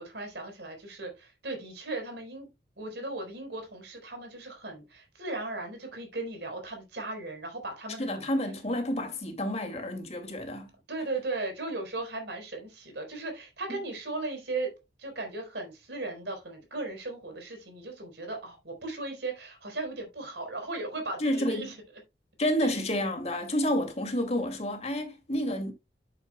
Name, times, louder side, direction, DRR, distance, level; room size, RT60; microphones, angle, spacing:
voice 1, 0.0-2.5 2.8-8.3 10.9-14.7 15.0-21.8 22.6-22.8, right 2 dB, 70° right, 4.2 m, -37 dB
voice 2, 8.0-10.7 13.7-13.8 21.2-21.7 22.4-25.7, equal, 35° left, 2.4 m, -30 dB
12.0 x 7.4 x 2.2 m
head